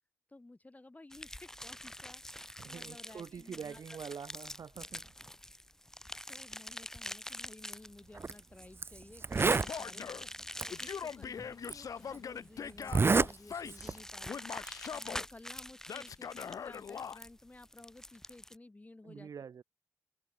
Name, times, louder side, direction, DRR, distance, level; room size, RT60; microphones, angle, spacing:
voice 1, 0.3-4.0 6.3-10.1 10.6-19.3, left 2 dB, 25° left, 6.1 m, -55 dB
sound 1, 1.1-18.6, left 1 dB, 10° left, 5.3 m, -46 dB
voice 2, 2.6-5.0 19.0-19.6, right 7 dB, 85° right, 3.3 m, -45 dB
Zipper (clothing), 8.2-8.3 8.8-8.9 9.2-9.7 10.6-10.7 11.6-11.7 12.8-13.3 13.7-14.0, right 4 dB, 40° right, 0.6 m, -27 dB
Male speech man speaking / Yell, 9.7-10.3 10.7-14.0 14.3-15.2 15.9-17.2, left 7 dB, 80° left, 0.7 m, -42 dB
cardioid pair, 75°, 6 cm